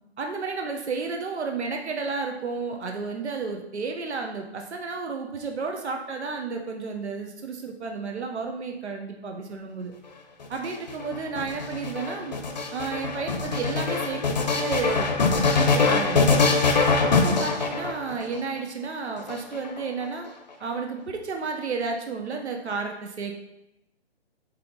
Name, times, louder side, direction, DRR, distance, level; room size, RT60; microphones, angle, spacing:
voice 1, 0.2-9.9 10.5-12.4 12.7-14.2 14.5-15.1 15.6-16.3 17.0-20.3 20.6-23.4, right 4 dB, 80° right, 3 dB, 1.0 m, -32 dB
sound 1, 10.4-18.4 19.2-20.0, left 4 dB, 40° left, 0.7 m, -23 dB
8.4 x 3.0 x 3.9 m, 0.89 s
hypercardioid pair, 175°, 33 cm